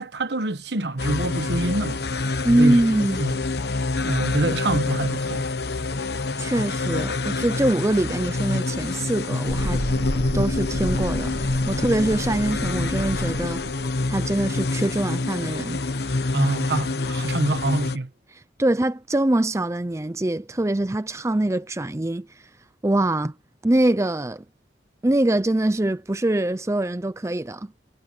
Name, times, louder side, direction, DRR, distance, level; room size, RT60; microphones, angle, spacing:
voice 1, 0.0-2.0 2.6-2.8 3.2-3.4 4.0-5.4 16.3-18.1, right 2 dB, 70° right, 1.2 m, -25 dB
sound 1, 1.0-18.0, left 3 dB, 60° left, 1.0 m, -27 dB
voice 2, 2.4-3.2 6.4-9.8 10.3-13.6 14.1-15.8 18.3-22.3 22.8-23.3 23.6-24.4 25.0-27.7, right 1 dB, 15° right, 0.5 m, -23 dB
Thunderstorm, 9.5-16.9, right 1 dB, 45° right, 1.8 m, -33 dB
head